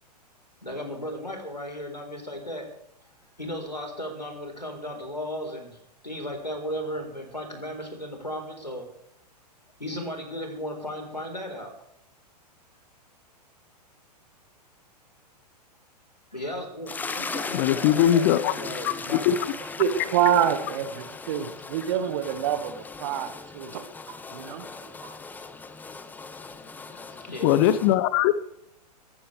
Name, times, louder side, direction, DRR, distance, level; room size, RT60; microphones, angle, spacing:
voice 1, 0.6-2.7 3.4-5.8 6.0-8.9 9.8-11.7 16.3-19.5 27.2-27.6, equal, 90° left, 3 dB, 4.2 m, -35 dB
sound 1, 16.9-27.9, left 4 dB, 10° left, 0.9 m, -38 dB
voice 2, 17.5-18.5 19.3-19.4 27.4-28.5, left 11 dB, 35° left, 15 dB, 1.0 m, -20 dB
voice 3, 19.8-23.9 24.3-24.6 25.0-25.2, right 9 dB, 45° right, 9 dB, 1.7 m, -26 dB
18.5 x 14.5 x 3.4 m, 0.76 s
figure-of-eight pair, 105°, 21 cm